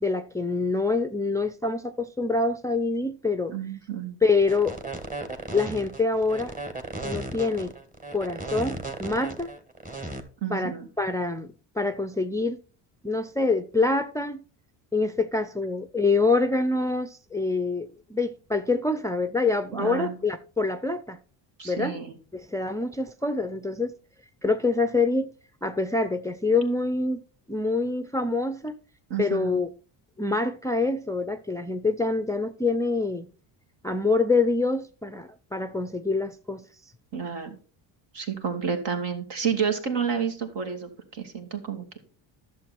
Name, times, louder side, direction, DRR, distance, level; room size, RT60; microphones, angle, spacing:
voice 1, 0.0-3.6 4.2-4.8 5.5-6.5 7.0-7.7 8.1-9.5 10.5-12.6 13.0-14.4 14.9-21.2 21.6-22.0 22.3-23.9 24.4-25.3 25.6-27.2 27.5-28.7 29.2-29.7 30.2-33.3 33.8-36.7, left 3 dB, 5° left, 0.6 m, -26 dB
voice 2, 3.5-4.2 10.4-10.9 19.7-20.2 21.6-22.1 29.1-29.6 37.1-37.6 38.1-42.0, right 7 dB, 55° right, 2.6 m, -30 dB
sound 1, 4.4-10.2, right 2 dB, 15° right, 1.8 m, -35 dB
11.0 x 7.0 x 4.4 m
supercardioid pair, 75°, 49 cm